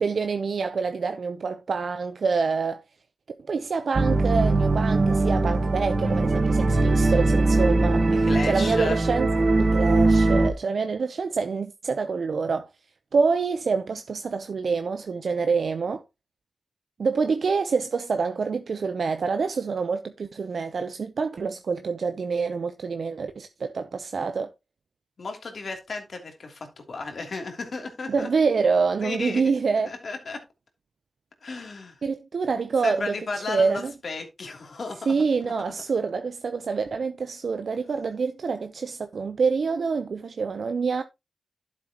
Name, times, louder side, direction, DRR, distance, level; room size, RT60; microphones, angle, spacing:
voice 1, 0.0-2.8 3.5-9.3 9.6-12.7 13.1-16.0 17.0-24.5 28.1-29.9 32.0-33.9 35.1-41.0, right 5 dB, 70° right, 0.7 m, -26 dB
sound 1, 3.9-10.5, right 2 dB, 50° right, 1.5 m, -21 dB
voice 2, 8.1-9.0 25.2-28.3 29.0-29.4 29.8-30.4 31.4-32.0 32.8-35.1, left 3 dB, 65° left, 3.1 m, -34 dB
12.0 x 7.6 x 3.0 m
wide cardioid pair, 80°, 0 cm